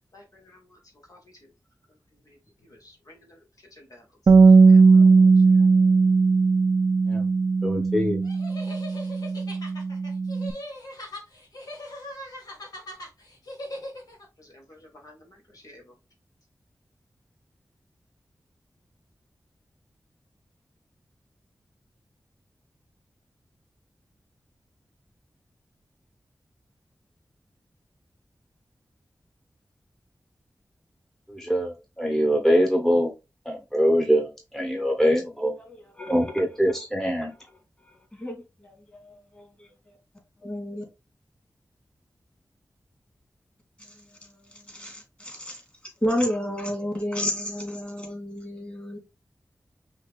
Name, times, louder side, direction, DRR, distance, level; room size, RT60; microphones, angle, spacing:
voice 1, 0.1-0.8 1.1-1.5 2.1-4.1 4.5-5.7 14.4-15.9, left 1 dB, 60° left, 1.8 m, -53 dB
Bass guitar, 4.3-10.5, right 4 dB, 65° right, 0.5 m, -18 dB
voice 2, 7.6-8.2 31.3-33.1 33.4-35.6 36.1-37.3, equal, 5° left, 1.1 m, -23 dB
sound 1, 8.2-14.3, left 1 dB, 80° left, 2.0 m, -40 dB
voice 3, 35.7-36.3 37.9-40.0 40.4-40.8 44.2-45.6 46.0-49.0, equal, 20° left, 2.9 m, -32 dB
5.6 x 2.9 x 3.3 m
cardioid pair, 50°, 7 cm